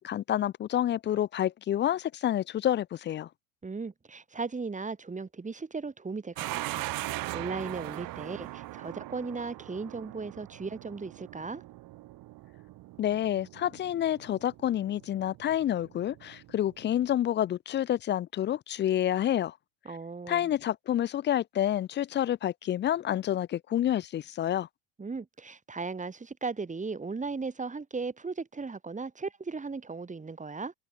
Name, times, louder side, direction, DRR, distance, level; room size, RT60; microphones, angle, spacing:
voice 1, 0.0-3.3 13.0-19.5 20.3-24.7, left 11 dB, 25° left, 0.5 m, -28 dB
voice 2, 3.6-6.9 7.3-11.6 19.8-20.5 25.0-30.7, right 4 dB, 15° right, 6.5 m, -37 dB
sound 1, 6.4-17.1, right 18 dB, 50° right, 1.6 m, -41 dB
supercardioid pair, 105°, 44 cm